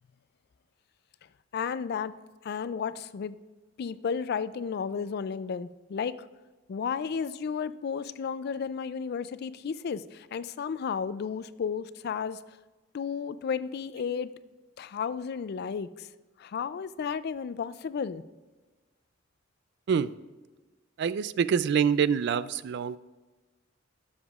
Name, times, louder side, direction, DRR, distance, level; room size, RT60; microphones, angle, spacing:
voice 1, 1.5-2.1 2.4-3.4 3.8-6.3 6.7-12.4 12.9-14.3 14.8-16.1 16.4-18.2, left 6 dB, 55° left, 16 dB, 0.3 m, -33 dB
voice 2, 21.0-23.0, right 7 dB, 60° right, 16 dB, 0.3 m, -26 dB
13.0 x 7.1 x 2.4 m, 1.2 s
head